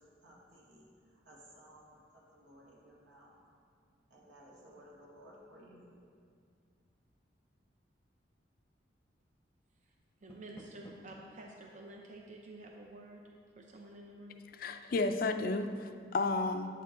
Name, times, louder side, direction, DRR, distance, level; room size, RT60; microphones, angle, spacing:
voice 1, 0.2-3.3 4.1-5.9, equal, 80° right, -4 dB, 1.9 m, -57 dB
Door, 10.0-11.2, equal, 15° left, 0.7 m, -54 dB
voice 2, 10.2-13.2 13.6-14.4, right 2 dB, 40° right, 0 dB, 0.6 m, -50 dB
voice 3, 14.6-16.8, left 3 dB, 50° left, 8 dB, 0.4 m, -32 dB
8.9 x 6.7 x 3.8 m, 2.3 s
head